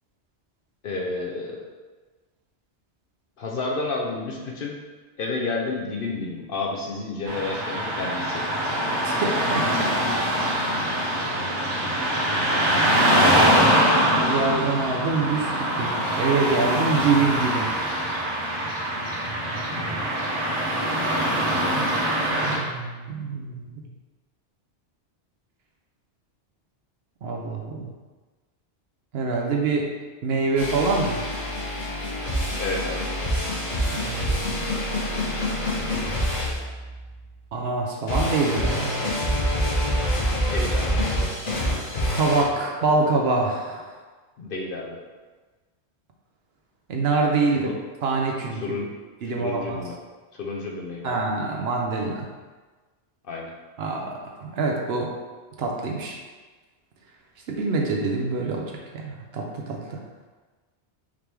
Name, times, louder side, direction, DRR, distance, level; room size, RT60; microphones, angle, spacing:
voice 1, 0.8-1.7 3.4-4.8 5.2-8.5 13.1-14.2 32.6-33.0 40.5-41.0 44.4-45.0 47.5-47.7 48.5-48.9 49.4-49.9 50.3-51.2 53.2-53.5, left 3 dB, 55° left, -1 dB, 0.8 m, -30 dB
Car passing by / Traffic noise roadway noise, 7.3-22.6, right 1 dB, 85° right, 1.3 m, -23 dB
voice 2, 9.0-9.9 14.2-17.7 21.7-21.9 22.3-23.8 27.2-27.9 29.1-29.9 30.2-31.2 33.9-34.5 37.5-39.0 42.1-43.9 46.9-47.7 48.0-48.8 49.2-49.8 51.0-52.3 53.8-55.1 55.6-56.2 57.5-60.0, right 3 dB, 65° right, 1 dB, 0.9 m, -25 dB
sound 1, 30.6-37.3 38.1-42.4, equal, 85° left, 1.9 m, -26 dB
5.0 x 3.0 x 3.4 m, 1.3 s
omnidirectional pair, 1.2 m